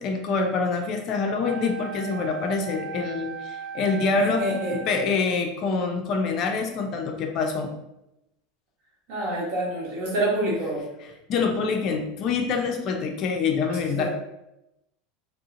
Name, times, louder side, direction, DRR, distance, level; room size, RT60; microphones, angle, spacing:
voice 1, 0.0-4.4 4.7-7.7 11.3-14.1, left 4 dB, 40° left, 3 dB, 0.4 m, -26 dB
Wind instrument woodwind instrument, 1.4-5.2, right 6 dB, 85° right, 0.9 m, -37 dB
voice 2, 4.2-4.8 9.1-10.8 13.7-14.1, right 1 dB, 50° right, -5 dB, 1.3 m, -27 dB
3.6 x 2.4 x 2.5 m, 0.88 s
figure-of-eight pair, 80°, 0 cm